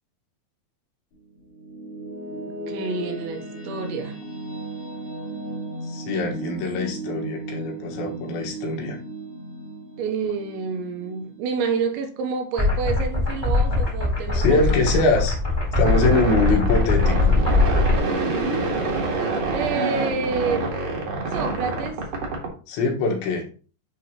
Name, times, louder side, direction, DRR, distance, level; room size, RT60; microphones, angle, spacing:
sound 1, 1.1-12.4, right 2 dB, 50° left, 2.5 m, -36 dB
voice 1, 2.5-4.2 10.0-14.8 18.0-18.8 19.5-20.8 21.3-22.0, right 5 dB, 85° right, 3.1 m, -29 dB
voice 2, 5.8-9.0 14.3-15.4 15.8-17.3 22.7-23.5, left 3 dB, 80° left, 3.7 m, -23 dB
sound 2, 12.6-18.0, left 3 dB, 10° left, 1.8 m, -21 dB
sound 3, 15.8-22.5, right 3 dB, 60° right, 1.7 m, -26 dB
10.5 x 3.9 x 2.9 m
omnidirectional pair, 5.2 m